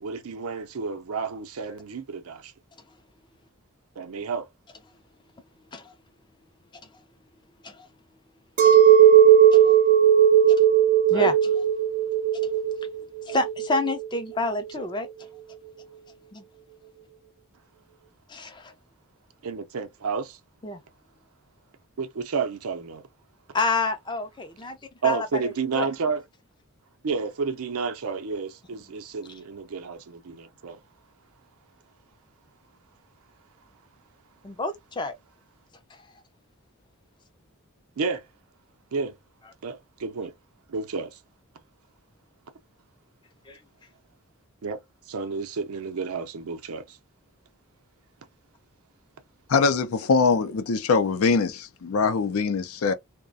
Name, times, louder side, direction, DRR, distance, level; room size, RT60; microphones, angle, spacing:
voice 1, 0.0-2.5 4.0-4.5 11.1-11.3 19.4-20.4 22.0-23.0 25.0-26.2 27.0-30.8 38.0-38.2 38.9-39.1 39.6-40.3 40.7-41.2 44.6-44.8 45.1-47.0, right 5 dB, 85° right, 0.6 m, -31 dB
Chink clink, 8.6-14.0, right 9 dB, 35° right, 0.5 m, -17 dB
voice 2, 13.2-15.1 16.3-16.4 18.3-18.7 20.6-20.8 23.5-24.8 25.0-25.9 34.4-35.1 43.5-43.6, left 2 dB, 20° left, 0.4 m, -28 dB
voice 3, 49.5-52.9, left 4 dB, 75° left, 0.5 m, -22 dB
2.3 x 2.1 x 2.5 m
head